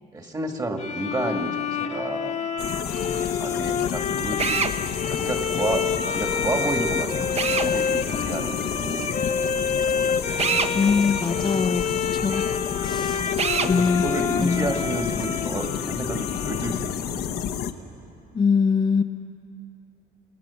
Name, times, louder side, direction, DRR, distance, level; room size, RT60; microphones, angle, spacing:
voice 1, 0.1-2.4 3.1-10.2 13.1-17.5, right 2 dB, 20° right, 4 dB, 2.0 m, -31 dB
Bowed string instrument, 0.8-17.3, left 6 dB, 45° left, 1.3 m, -28 dB
sound 1, 2.6-17.7, left 8 dB, 65° left, 1.1 m, -30 dB
Drill, 4.4-4.7 7.3-7.7 10.4-10.7 13.4-13.7, right 6 dB, 40° right, 1.0 m, -24 dB
voice 2, 10.7-11.8 12.1-12.4 12.8-13.2 13.7-14.0 14.4-14.8 18.3-19.0, left 5 dB, 30° left, 5 dB, 0.8 m, -22 dB
28.5 x 17.0 x 7.1 m, 2.7 s
cardioid pair, 110°, 17 cm